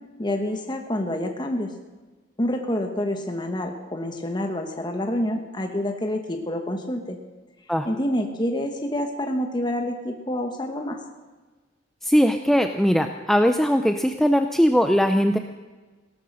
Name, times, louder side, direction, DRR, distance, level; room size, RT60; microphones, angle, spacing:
voice 1, 0.2-1.7 2.4-7.2 7.8-11.0, left 1 dB, 25° left, 4 dB, 1.1 m, -27 dB
voice 2, 12.0-15.4, equal, ahead, 6 dB, 0.5 m, -20 dB
17.5 x 12.5 x 6.5 m, 1.3 s
head